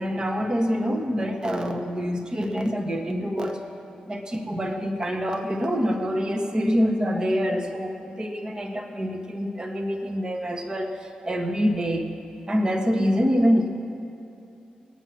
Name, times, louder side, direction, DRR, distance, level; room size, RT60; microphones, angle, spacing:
voice 1, 0.0-3.6 4.0-12.1 12.5-13.7, equal, 30° right, 4 dB, 1.5 m, -25 dB
21.0 x 9.1 x 6.0 m, 2.8 s
cardioid pair, 60°, 3 cm